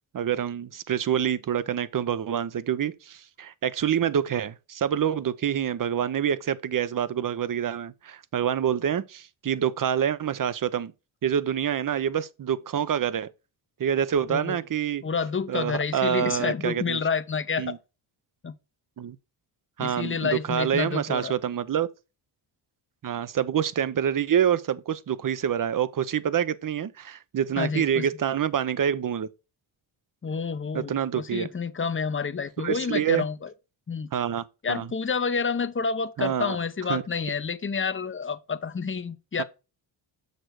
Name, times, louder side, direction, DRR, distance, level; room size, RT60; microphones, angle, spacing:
voice 1, 0.1-10.9 11.2-13.3 13.8-15.0 15.5-17.0 17.6-17.8 19.0-19.2 19.8-21.9 23.0-29.3 30.7-31.5 32.6-33.2 34.1-34.9 36.2-36.6 36.9-37.0 39.4-39.5, right 9 dB, 40° right, 0.7 m, -26 dB
voice 2, 15.0-17.8 18.4-18.6 19.8-21.3 27.6-28.1 30.2-33.5 33.9-34.1 34.6-39.4, left 5 dB, 25° left, 0.7 m, -29 dB
6.7 x 6.2 x 4.7 m
cardioid pair, 65°, 49 cm